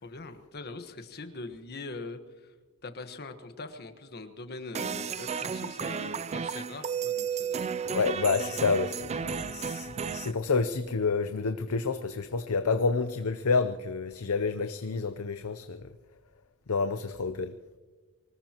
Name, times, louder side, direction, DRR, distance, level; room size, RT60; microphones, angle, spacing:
voice 1, 0.0-2.5 2.8-7.7 8.4-8.6, left 3 dB, 50° left, 8 dB, 1.3 m, -42 dB
sound 1, 4.7-10.3, right 6 dB, 30° right, 0.4 m, -33 dB
voice 2, 7.8-15.9 16.7-17.5, left 4 dB, 75° left, 9 dB, 0.7 m, -29 dB
24.5 x 19.5 x 3.0 m, 1.3 s
head